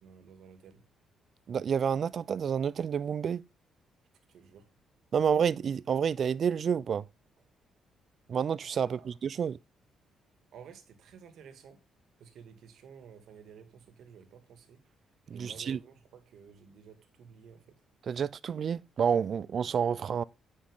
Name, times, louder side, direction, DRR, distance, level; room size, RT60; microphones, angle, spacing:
voice 1, 0.0-0.8 4.3-4.7 8.8-9.1 10.5-11.8 12.2-14.8 15.3-17.8, right 7 dB, 75° right, 2.1 m, -53 dB
voice 2, 1.5-3.4 5.1-7.0 8.3-9.6 15.3-15.8 18.0-20.2, right 7 dB, 55° right, 0.5 m, -29 dB
9.7 x 6.3 x 3.8 m
cardioid pair, 90°, 0 cm